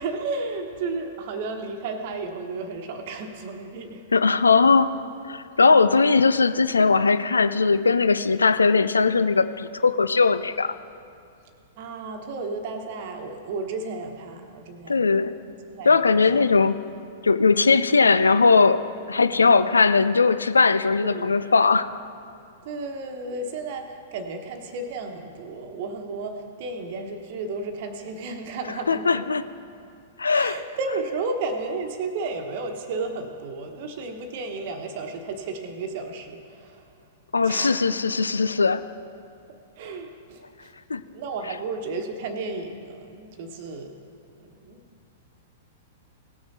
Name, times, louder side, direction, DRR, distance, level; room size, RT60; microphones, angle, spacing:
voice 1, 0.0-4.0 5.6-6.0 11.8-16.3 19.3-19.8 21.0-21.5 22.6-29.2 30.3-36.9 37.4-37.9 39.8-40.7 41.1-44.0 44.4-44.8, right 3 dB, 45° right, 5 dB, 1.2 m, -33 dB
voice 2, 4.1-4.9 5.3-10.8 14.9-15.3 15.8-16.8 17.2-18.8 19.1-21.9 28.9-29.4 30.2-30.6 37.3-38.8 40.9-41.0, left 4 dB, 75° left, 12 dB, 0.4 m, -19 dB
18.0 x 6.5 x 4.2 m, 2.5 s
figure-of-eight pair, 100°, 0 cm